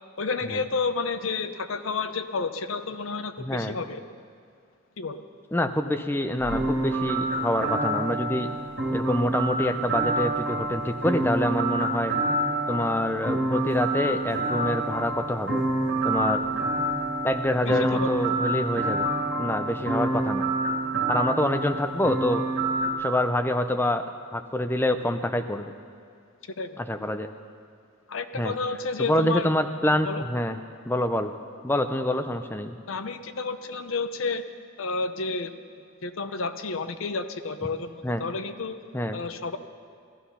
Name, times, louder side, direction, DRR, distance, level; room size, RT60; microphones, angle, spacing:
voice 1, 0.2-4.0 5.0-5.2 17.6-18.1 26.6-26.8 28.1-29.5 30.1-30.2 32.9-34.4 34.8-35.5 36.0-38.8 39.1-39.6, left 4 dB, 75° left, 10 dB, 0.7 m, -30 dB
voice 2, 3.4-3.8 5.5-8.5 8.9-12.1 12.7-15.6 16.0-16.4 17.2-19.0 19.4-20.4 21.1-22.4 23.0-24.0 24.3-25.6 26.8-27.3 28.3-28.5 29.0-30.6 30.9-31.3 31.6-32.8 38.0-38.2 38.9-39.2, left 1 dB, 10° left, 7 dB, 0.5 m, -26 dB
sound 1, 6.4-22.9, right 2 dB, 55° right, 2.5 m, -27 dB
15.5 x 13.5 x 5.7 m, 2.3 s
head